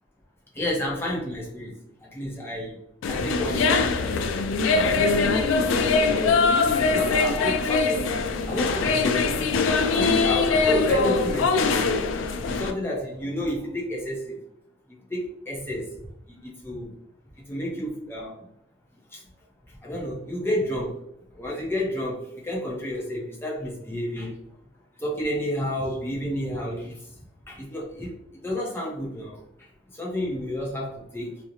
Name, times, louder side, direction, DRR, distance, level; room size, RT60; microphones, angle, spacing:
voice 1, 0.5-2.8 3.1-3.8 4.1-4.3 4.8-5.6 6.3-8.1 8.5-12.0 12.6-14.4 15.1-15.9 16.3-16.9 17.5-18.3 19.1-19.2 19.8-21.0 21.3-24.4 25.0-27.0 27.5-28.1 28.4-29.4 29.9-31.4, equal, 10° left, -3 dB, 0.5 m, -31 dB
sound 1, 3.0-12.7, left 4 dB, 85° left, 0.3 m, -22 dB
2.5 x 2.0 x 2.8 m, 0.77 s
head